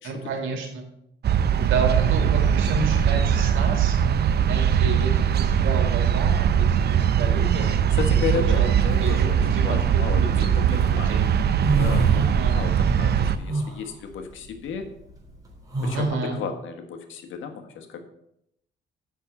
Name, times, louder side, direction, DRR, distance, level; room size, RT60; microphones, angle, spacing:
voice 1, 0.0-0.9 1.5-4.0 4.5-7.9 8.3-8.7 9.0-11.3 12.1-12.6 15.9-16.4, right 4 dB, 85° right, 3 dB, 2.3 m, -31 dB
sound 1, 1.2-13.4, right 8 dB, 55° right, 0.7 m, -21 dB
voice 2, 8.0-11.1 11.8-12.1 12.5-14.9 15.8-18.0, left 6 dB, 75° left, 6 dB, 1.4 m, -33 dB
sound 2, 10.0-10.8 11.2-12.8 13.0-16.1, right 2 dB, 20° right, 3.4 m, -28 dB
7.4 x 6.1 x 6.9 m, 0.78 s
cardioid pair, 90°, 20 cm